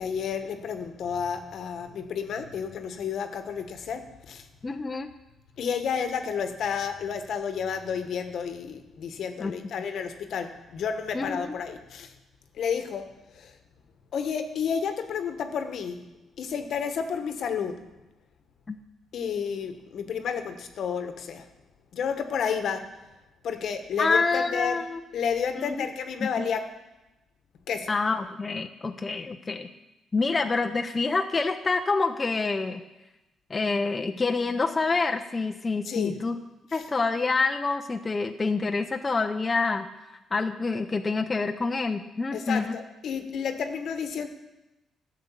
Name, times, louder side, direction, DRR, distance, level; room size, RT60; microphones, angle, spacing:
voice 1, 0.0-4.4 5.6-12.1 12.5-13.5 14.1-16.0 16.4-17.9 19.1-21.5 21.9-22.9 23.4-24.8 25.1-26.7 27.7-27.9 35.8-36.2 42.3-44.3, left 7 dB, 65° left, 7 dB, 1.2 m, -31 dB
voice 2, 4.6-5.1 9.4-9.5 11.1-11.4 18.7-18.8 24.0-25.0 25.5-25.9 26.2-26.3 27.9-29.7 30.1-32.8 33.5-36.4 36.7-39.9 40.3-42.8, left 4 dB, 25° left, 5 dB, 0.6 m, -27 dB
12.0 x 6.7 x 8.4 m, 1.0 s
cardioid pair, 90°, 0 cm